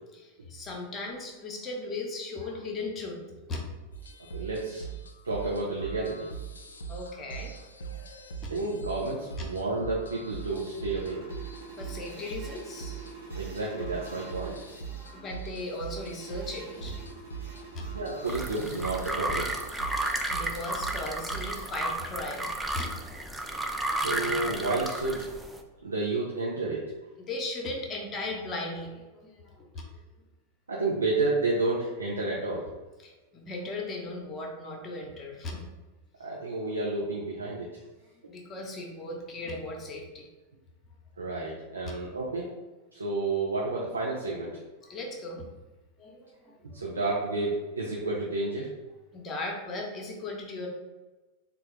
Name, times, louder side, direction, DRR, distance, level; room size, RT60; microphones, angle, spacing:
voice 1, 0.1-3.2 3.5-3.6 6.9-7.5 8.4-8.5 11.8-13.1 14.9-17.1 17.5-17.8 20.3-22.5 22.7-23.4 24.0-24.3 27.2-29.8 33.0-35.6 38.3-40.3 41.8-41.9 44.8-45.5 46.0-46.8 49.1-50.7, left 2 dB, 25° left, 0 dB, 0.8 m, -37 dB
sound 1, 3.9-21.7, right 6 dB, 75° left, 0.4 m, -41 dB
voice 2, 4.3-4.8 5.2-6.3 8.5-11.2 13.3-14.6 17.9-19.5 23.9-25.3 25.8-26.8 30.7-32.7 36.2-37.7 41.2-42.5 42.9-44.6 46.7-48.7, right 3 dB, 75° right, -4 dB, 0.5 m, -30 dB
sound 2, 9.8-19.1, right 4 dB, 55° right, 1.1 m, -48 dB
sound 3, 18.2-25.6, right 1 dB, 5° right, 0.4 m, -33 dB
3.8 x 2.3 x 3.2 m, 1.2 s
figure-of-eight pair, 90°, 0 cm